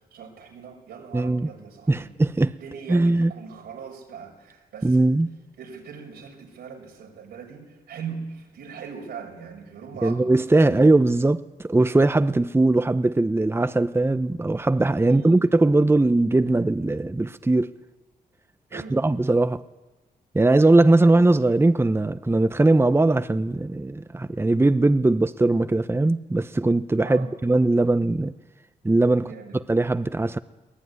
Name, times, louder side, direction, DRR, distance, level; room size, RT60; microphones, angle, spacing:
voice 1, 0.0-2.1 2.6-5.1 5.6-10.3 15.1-15.5 18.7-19.0 27.0-27.3 29.2-29.6, right 6 dB, 90° right, 5.8 m, -40 dB
voice 2, 1.1-1.5 1.9-2.6 2.9-3.3 4.8-5.3 10.0-17.7 18.7-19.6 20.3-28.3 28.8-29.3 29.7-30.4, right 2 dB, 15° right, 0.8 m, -20 dB
23.0 x 17.5 x 9.6 m
supercardioid pair, 55°, 17 cm